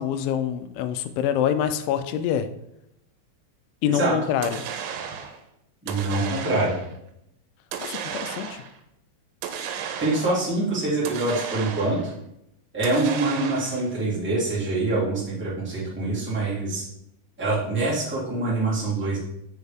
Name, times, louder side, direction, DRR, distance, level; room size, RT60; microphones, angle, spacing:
voice 1, 0.0-2.5 3.8-4.6 7.8-8.6, left 9 dB, 85° left, 10 dB, 2.9 m, -26 dB
sound 1, 4.4-5.4 5.9-6.9 7.7-8.8 9.4-10.5 11.1-12.1 12.8-13.9, right 7 dB, 80° right, 2.9 m, -34 dB
voice 2, 5.8-6.7 10.0-12.1 12.7-16.8 17.4-19.2, right 2 dB, 15° right, -9 dB, 0.4 m, -25 dB
6.3 x 6.3 x 3.5 m, 0.80 s
omnidirectional pair, 5.4 m